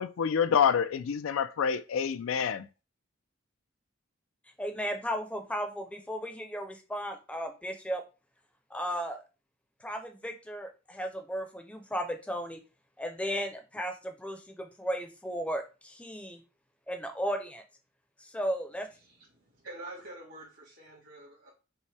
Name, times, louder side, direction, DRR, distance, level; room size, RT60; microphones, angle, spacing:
voice 1, 0.0-2.7, left 7 dB, 80° left, 0.4 m, -27 dB
voice 2, 4.6-8.0 8.7-9.2 9.8-12.6 13.0-16.4 16.9-17.6 18.2-18.9, equal, 5° left, 0.6 m, -35 dB
voice 3, 19.0-21.5, right 2 dB, 70° right, 1.7 m, -47 dB
5.4 x 2.1 x 3.3 m
head